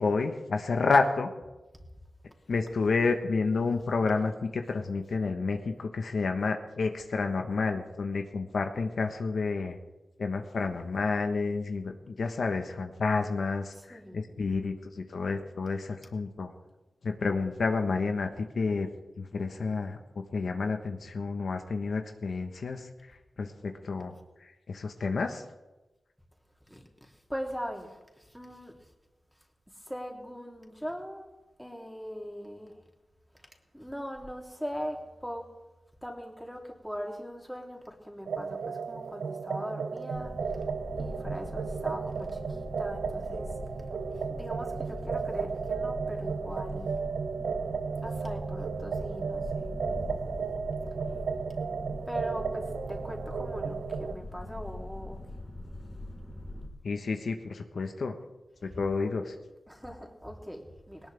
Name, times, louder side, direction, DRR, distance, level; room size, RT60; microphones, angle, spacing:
voice 1, 0.0-1.3 2.5-9.8 10.2-16.5 17.0-18.9 19.2-24.1 24.4-25.4 56.8-58.1 58.8-59.3, left 4 dB, 75° left, 5 dB, 1.3 m, -30 dB
voice 2, 13.7-14.3 26.7-28.9 29.7-31.3 31.6-32.8 33.4-35.5 36.0-40.6 41.0-43.9 44.3-47.0 48.0-49.8 52.1-55.2 58.6-59.1 59.7-61.1, equal, ahead, 1 dB, 3.1 m, -41 dB
sound 1, 38.3-54.1, right 5 dB, 85° right, 0.6 m, -34 dB
sound 2, 40.1-56.7, left 1 dB, 40° left, 3.2 m, -42 dB
19.0 x 19.0 x 3.5 m, 1.1 s
cardioid pair, 60°, 0 cm